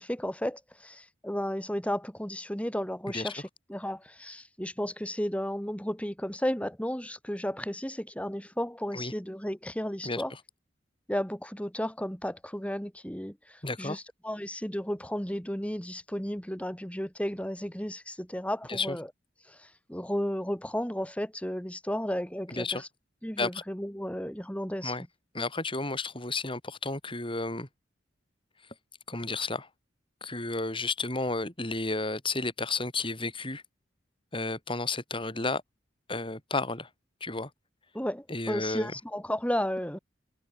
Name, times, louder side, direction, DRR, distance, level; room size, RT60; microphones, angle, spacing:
voice 1, 0.0-10.3 11.1-19.1 19.5-22.9 23.2-24.9 37.9-40.0, equal, 5° left, 5.8 m, -33 dB
voice 2, 13.6-14.0 18.7-19.0 22.5-22.8 23.4-23.6 24.8-25.0 25.3-27.7 29.1-29.7 30.2-33.6 34.3-35.6 36.1-36.9 37.2-37.5 38.3-38.9, left 3 dB, 30° left, 7.5 m, -32 dB
head